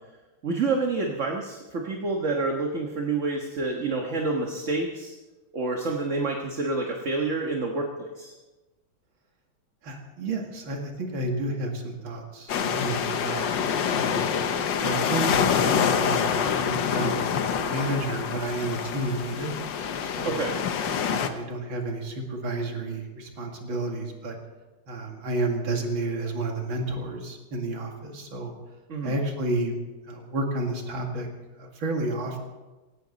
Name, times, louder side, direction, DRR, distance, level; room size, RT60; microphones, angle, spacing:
voice 1, 0.4-5.1 5.5-8.3 20.2-20.6 28.9-29.2, right 3 dB, 40° right, 1 dB, 1.5 m, -28 dB
voice 2, 9.8-14.3 14.8-16.4 16.6-17.3 17.6-19.6 20.0-20.4 21.0-24.4 24.9-28.5 29.0-29.8 30.1-31.3 31.6-32.4, right 2 dB, 70° right, 2 dB, 2.9 m, -31 dB
sound 1, 12.5-21.3, left 7 dB, 65° left, 1.6 m, -26 dB
17.5 x 17.0 x 4.1 m, 1.2 s
omnidirectional pair, 2.3 m